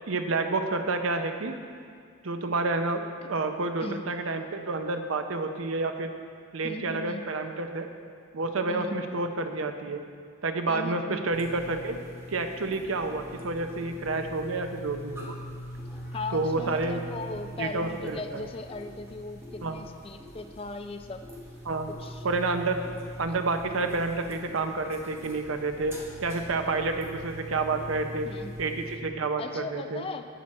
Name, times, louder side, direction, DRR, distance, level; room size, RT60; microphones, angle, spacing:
voice 1, 0.1-1.6 2.2-3.0 3.3-6.1 6.5-7.9 8.3-10.0 10.4-12.0 12.3-15.4 16.3-17.0 17.6-18.4 19.6-19.8 21.6-21.9 22.2-22.8 23.2-25.9 26.2-28.3 28.6-30.1, right 3 dB, 75° right, 6 dB, 0.7 m, -29 dB
voice 2, 6.6-7.2 8.7-9.0 10.7-11.2 16.1-21.2 21.9-22.2 28.3-28.5 29.4-30.2, left 3 dB, 25° left, 7 dB, 0.4 m, -38 dB
sound 1, 11.3-29.0, equal, 10° right, 1.1 m, -42 dB
11.0 x 7.5 x 4.2 m, 2.2 s
head